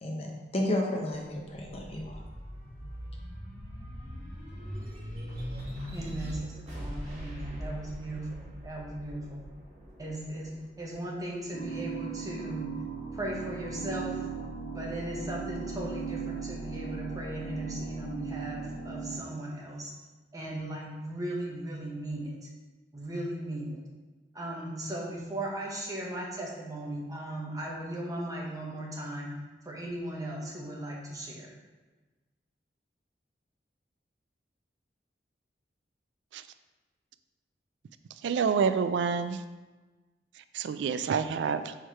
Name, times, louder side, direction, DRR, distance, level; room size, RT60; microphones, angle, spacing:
voice 1, 0.0-2.2, left 1 dB, 35° left, 0 dB, 0.9 m, -32 dB
sound 1, 1.3-11.9 12.4-13.5, equal, 40° right, 1.9 m, -41 dB
voice 2, 5.9-9.4 10.0-10.5 10.8-12.7 13.1-14.2 14.7-19.9 20.3-22.4 22.9-23.8 24.3-29.3 29.6-31.5, right 1 dB, 20° right, -3 dB, 1.1 m, -37 dB
sound 2, 11.5-19.2, right 5 dB, 80° left, 1.4 m, -38 dB
voice 3, 38.2-39.4 40.5-41.7, right 6 dB, 90° right, 12 dB, 0.3 m, -28 dB
4.7 x 4.4 x 4.6 m, 1.2 s
head